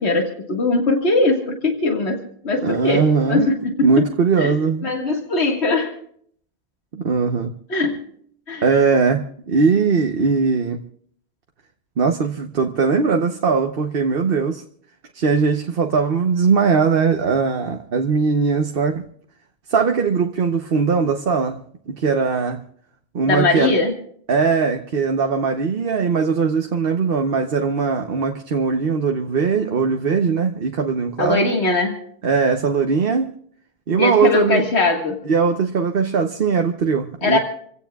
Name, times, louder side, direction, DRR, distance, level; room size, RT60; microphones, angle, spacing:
voice 1, 0.0-4.1 4.4-4.5 4.8-5.9 7.7-7.9 8.5-8.7 23.3-23.9 31.2-32.0 34.0-35.2 37.2-37.4, left 2 dB, 75° left, 2.1 m, -20 dB
voice 2, 2.6-3.5 3.8-4.9 6.9-7.5 8.6-10.8 12.0-14.6 15.1-19.0 19.7-21.6 21.9-22.6 23.1-23.7 24.3-31.5 32.2-33.3 33.9-34.7 35.3-37.4, right 5 dB, 60° right, 1.1 m, -20 dB
28.5 x 16.5 x 2.3 m
omnidirectional pair, 1.1 m